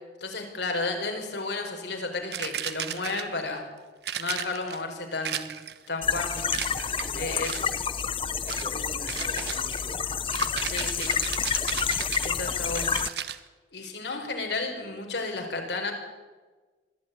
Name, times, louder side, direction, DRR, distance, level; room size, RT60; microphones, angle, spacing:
voice 1, 0.2-3.6 4.2-5.4 5.9-6.5 7.1-7.5 10.6-11.1 12.2-12.9 13.7-15.9, left 3 dB, 85° left, 3 dB, 4.8 m, -32 dB
sound 1, 2.3-3.5 4.0-4.8 5.2-5.9 6.5-7.1 7.4-7.9 8.5-8.7 9.1-13.4, right 9 dB, 75° right, 1.2 m, -35 dB
sound 2, 6.0-13.1, left 7 dB, 30° left, 0.6 m, -29 dB
voice 2, 6.8-7.8 8.2-10.2 11.7-12.4, right 1 dB, 35° right, 3 dB, 4.7 m, -45 dB
23.5 x 14.5 x 9.5 m, 1.3 s
head